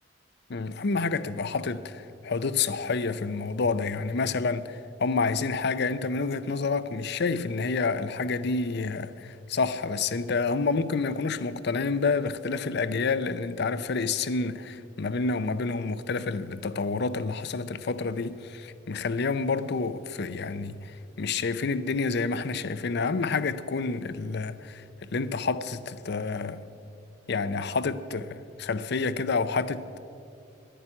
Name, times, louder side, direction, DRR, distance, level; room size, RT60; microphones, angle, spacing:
voice 1, 0.5-26.6 27.3-30.0, left 4 dB, 60° left, 0.6 m, -29 dB
11.0 x 10.0 x 9.8 m
head